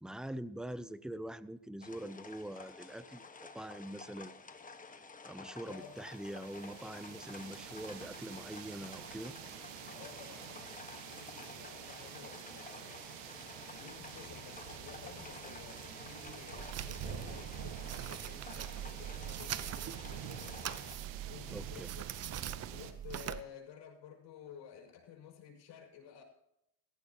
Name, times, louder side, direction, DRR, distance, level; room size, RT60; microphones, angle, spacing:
voice 1, 0.0-4.4 4.9-9.3 21.5-21.9, right 1 dB, ahead, 14 dB, 0.5 m, -44 dB
sound 1, 1.8-20.9, left 4 dB, 15° left, 1.4 m, -52 dB
voice 2, 5.6-6.0 9.9-10.8 11.1-13.0 13.8-20.7 21.2-22.1 22.7-26.2, left 8 dB, 60° left, 2 dB, 6.2 m, -53 dB
sound 2, 5.8-22.9, right 9 dB, 75° right, 1.6 m, -48 dB
sound 3, 16.6-23.4, right 10 dB, 35° right, 0.8 m, -43 dB
18.0 x 15.0 x 2.9 m, 0.81 s
supercardioid pair, 110°, 48 cm